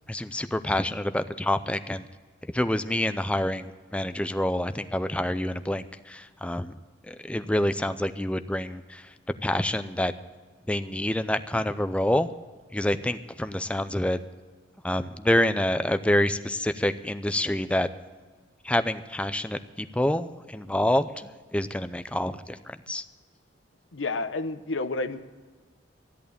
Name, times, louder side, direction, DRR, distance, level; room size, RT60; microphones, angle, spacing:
voice 1, 0.1-2.0 2.5-6.8 7.0-9.1 9.4-10.1 10.7-12.3 12.7-14.2 14.8-17.9 18.6-23.0, left 1 dB, 5° left, 11 dB, 0.5 m, -27 dB
voice 2, 23.9-25.2, left 3 dB, 90° left, 10 dB, 0.9 m, -30 dB
13.5 x 11.0 x 6.8 m, 1.4 s
head